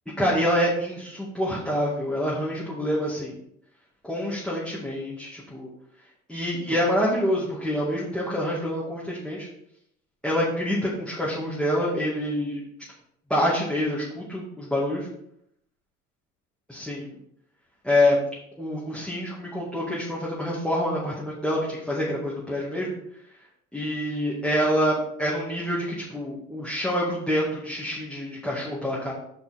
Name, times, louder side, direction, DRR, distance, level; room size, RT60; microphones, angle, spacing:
voice 1, 0.2-3.3 4.0-5.7 6.3-9.5 10.2-12.6 13.3-15.1 16.7-17.1 17.8-18.2 18.6-22.9 23.7-29.1, equal, ahead, -7 dB, 2.2 m, -26 dB
7.0 x 5.4 x 4.3 m, 0.74 s
hypercardioid pair, 75°, 34 cm